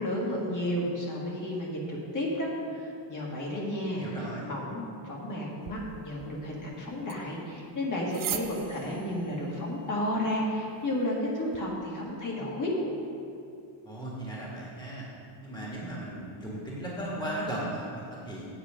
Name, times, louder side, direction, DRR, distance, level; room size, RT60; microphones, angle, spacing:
voice 1, 0.0-4.0 4.5-12.7, left 1 dB, 40° left, -4 dB, 1.9 m, -32 dB
voice 2, 4.0-4.5 13.8-15.1 15.4-18.5, right 1 dB, 10° left, -5 dB, 1.7 m, -36 dB
sound 1, 5.6-11.6, right 10 dB, 40° right, 0.6 m, -43 dB
8.4 x 8.1 x 5.1 m, 2.7 s
cardioid pair, 145°, 49 cm